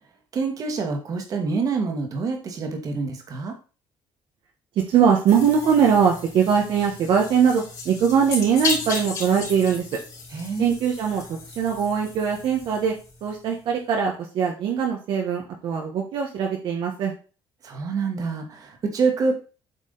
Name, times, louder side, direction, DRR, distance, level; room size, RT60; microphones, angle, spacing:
voice 1, 0.3-3.5 10.3-10.7 17.6-19.3, right 4 dB, 40° right, 3 dB, 1.8 m, -26 dB
voice 2, 4.9-9.9 10.6-12.9 13.2-17.1, right 7 dB, 60° right, 0 dB, 1.3 m, -21 dB
sound 1, 5.3-13.4, left 3 dB, 40° left, 3.2 m, -35 dB
8.2 x 4.8 x 4.0 m, 0.35 s
cardioid pair, 165°, 9 cm